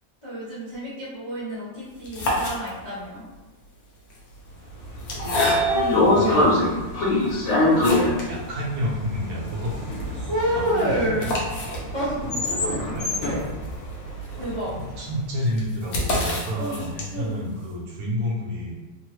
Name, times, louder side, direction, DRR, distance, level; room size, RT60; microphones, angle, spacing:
voice 1, 0.2-3.2 5.7-6.5 10.1-11.3 11.9-13.4 14.3-14.7 16.6-16.8 17.1-17.3, equal, 40° left, -11 dB, 0.4 m, -29 dB
sound 1, 1.9-3.1 4.0-6.0 6.6-6.7 7.2-8.4 8.7-8.8 9.0-9.1 9.5-17.4, left 1 dB, 85° left, 0.8 m, -30 dB
Train / Sliding door, 4.8-14.9, left 2 dB, 65° left, 1.3 m, -24 dB
voice 2, 4.8-5.6 6.1-6.6 7.0-7.1 7.6-11.4 12.2-12.5 12.8-13.1 14.3-18.8, equal, 70° right, -4 dB, 1.4 m, -31 dB
3.7 x 2.0 x 3.0 m, 1.2 s
omnidirectional pair, 2.4 m